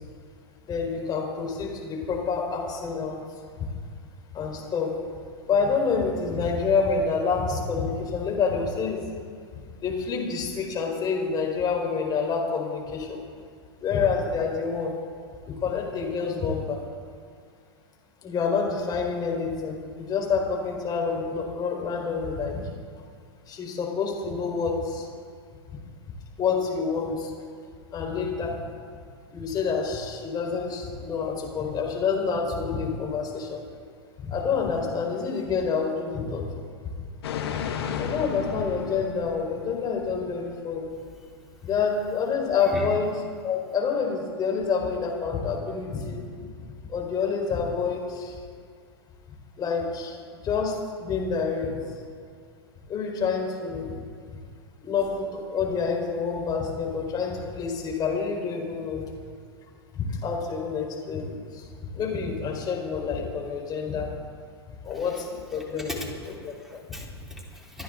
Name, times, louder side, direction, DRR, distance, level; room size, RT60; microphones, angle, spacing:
voice 1, 0.7-3.2 4.3-4.9 5.4-9.1 9.8-13.2 13.8-14.9 15.5-16.8 18.2-22.7 23.5-25.1 26.4-27.3 27.9-28.6 29.3-33.6 34.2-36.5 38.0-40.9 41.6-43.1 43.4-46.2 46.9-48.4 49.6-50.1 50.4-51.7 52.9-53.9 54.8-59.0 59.9-61.3 62.0-64.1 64.8-66.0 66.2-66.8, left 5 dB, 30° left, 0 dB, 4.5 m, -27 dB
sound 1, 37.2-40.1 40.4-40.5, left 7 dB, 70° left, 1.6 m, -33 dB
voice 2, 66.3-67.8, left 1 dB, 5° right, -3 dB, 3.8 m, -38 dB
27.5 x 10.5 x 3.9 m, 2.1 s
hypercardioid pair, 105°, 14 cm